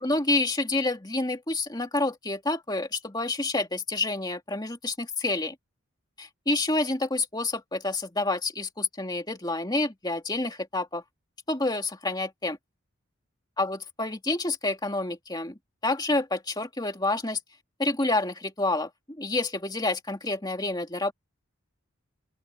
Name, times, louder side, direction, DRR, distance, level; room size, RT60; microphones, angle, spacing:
voice 1, 0.0-5.5 6.2-11.0 11.5-12.6 13.6-17.4 17.8-21.1, left 2 dB, 20° left, 2.4 m, -28 dB
open air
head